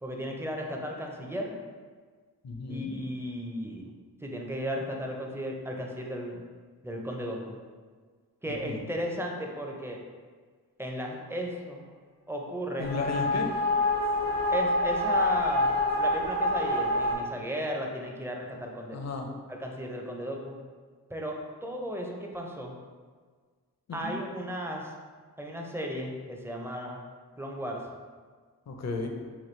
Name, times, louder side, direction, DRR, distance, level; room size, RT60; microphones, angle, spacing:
voice 1, 0.0-1.5 2.7-3.9 4.2-6.4 6.8-7.6 8.4-10.0 10.8-11.8 12.3-12.9 14.5-15.7 16.0-19.0 19.5-20.6 21.1-22.8 23.9-24.9 25.4-27.0 27.4-27.8, equal, 5° right, 0 dB, 0.5 m, -35 dB
voice 2, 2.4-3.0 8.6-8.8 12.8-13.5 18.9-19.3 23.9-24.2 28.7-29.1, left 3 dB, 45° left, 3 dB, 0.5 m, -33 dB
sound 1, 12.8-17.1, left 1 dB, 85° left, 0.9 m, -26 dB
3.1 x 2.2 x 3.2 m, 1.6 s
cardioid pair, 40°, 40 cm